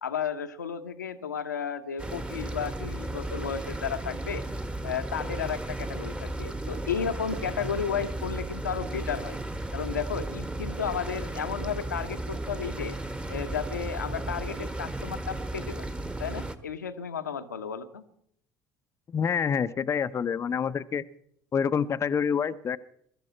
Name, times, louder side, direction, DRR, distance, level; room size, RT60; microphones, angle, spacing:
voice 1, 0.0-4.4 4.8-9.4 9.7-13.0 13.3-15.9 16.2-18.0, left 7 dB, 85° left, 8 dB, 1.0 m, -33 dB
sound 1, 2.0-16.6, right 1 dB, 10° right, 1.4 m, -35 dB
voice 2, 19.1-21.0 21.5-22.8, left 7 dB, 30° left, 12 dB, 0.7 m, -27 dB
23.0 x 13.0 x 4.4 m, 0.67 s
figure-of-eight pair, 60°, 9 cm